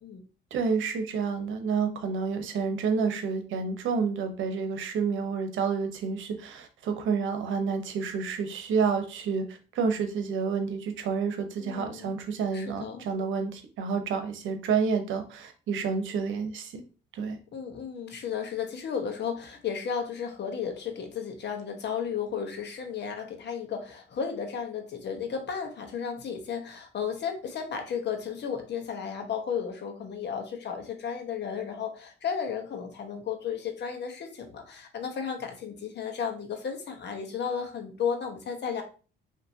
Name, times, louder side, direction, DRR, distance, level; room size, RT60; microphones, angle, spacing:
voice 1, 0.5-16.8 17.1-17.4, right 5 dB, 75° right, 6 dB, 0.9 m, -29 dB
voice 2, 11.6-12.1 12.5-13.0 17.5-38.8, left 7 dB, 60° left, 4 dB, 1.1 m, -34 dB
5.5 x 2.9 x 2.7 m, 0.36 s
cardioid pair, 90°, 20 cm